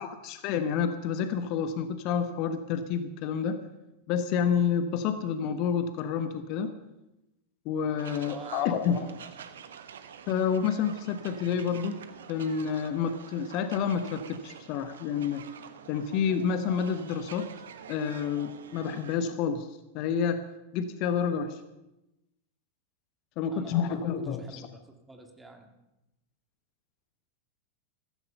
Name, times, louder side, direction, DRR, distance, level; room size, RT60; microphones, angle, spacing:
voice 1, 0.0-3.6 4.1-6.7 7.6-9.1 10.3-12.0 12.3-15.4 15.9-17.5 17.9-19.7 19.9-20.4 20.7-21.6 23.4-24.6, left 7 dB, 40° left, 10 dB, 1.2 m, -29 dB
sound 1, 8.0-19.2, right 8 dB, 65° right, 1.0 m, -47 dB
voice 2, 8.3-9.2 23.5-25.7, right 2 dB, 10° right, 4 dB, 2.2 m, -47 dB
15.0 x 15.0 x 5.6 m, 0.94 s
figure-of-eight pair, 90°, 0 cm